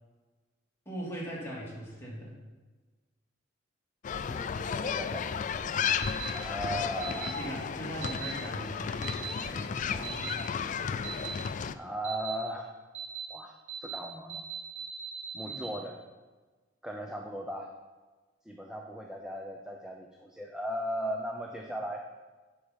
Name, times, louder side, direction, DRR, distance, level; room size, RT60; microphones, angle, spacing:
voice 1, 0.9-2.4 7.0-11.1 15.4-15.7, right 1 dB, 15° left, -5 dB, 2.3 m, -41 dB
sound 1, 4.0-11.7, left 7 dB, 45° left, 0.3 m, -33 dB
voice 2, 4.3-5.7 6.3-7.5 11.7-12.7 13.3-13.6 13.8-14.4 15.3-16.0 16.8-17.7 18.5-22.0, equal, 5° right, 1 dB, 0.6 m, -37 dB
sound 2, 6.0-6.3 7.0-7.3 8.0-8.3 9.0-9.3 10.0-10.3 11.0-11.3 12.0-12.4 12.9-13.3 13.7-14.0 14.3-15.7, right 8 dB, 90° right, 1.8 m, -39 dB
9.3 x 5.5 x 5.1 m, 1.3 s
head